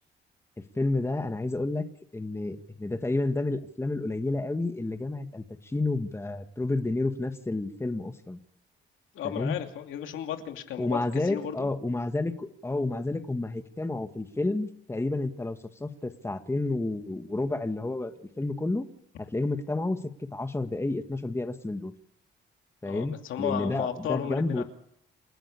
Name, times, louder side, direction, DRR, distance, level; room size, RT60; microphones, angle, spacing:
voice 1, 0.6-1.9 2.1-8.4 9.2-9.6 10.8-18.9 19.2-20.0 20.3-21.9 22.8-24.6, left 2 dB, 15° left, 7 dB, 1.9 m, -30 dB
voice 2, 9.1-11.7 22.8-24.6, left 10 dB, 85° left, 5 dB, 2.7 m, -34 dB
28.5 x 11.0 x 8.5 m, 0.72 s
cardioid pair, 90°, 20 cm